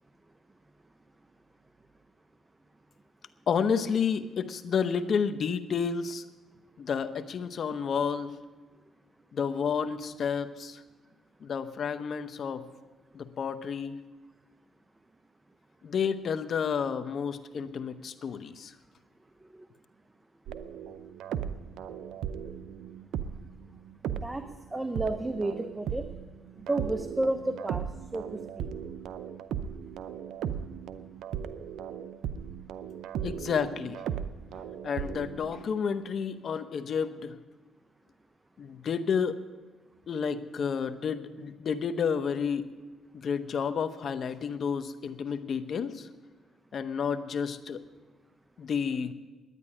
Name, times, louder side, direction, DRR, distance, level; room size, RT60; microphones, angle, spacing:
voice 1, 3.5-6.2 6.8-8.3 9.3-10.8 11.4-12.6 13.1-14.0 15.8-18.7 33.2-34.0 34.5-37.4 38.6-39.4 40.1-42.7 43.1-46.1 46.7-47.8 48.6-49.1, left 6 dB, 55° left, 11 dB, 0.8 m, -30 dB
sound 1, 20.5-24.6 24.9-35.6, right 8 dB, 80° right, 0.6 m, -37 dB
voice 2, 24.7-26.0 26.7-27.9 28.1-28.7, right 2 dB, 15° right, 9 dB, 0.7 m, -31 dB
11.0 x 9.7 x 9.8 m, 1.3 s
cardioid pair, 90°, 0 cm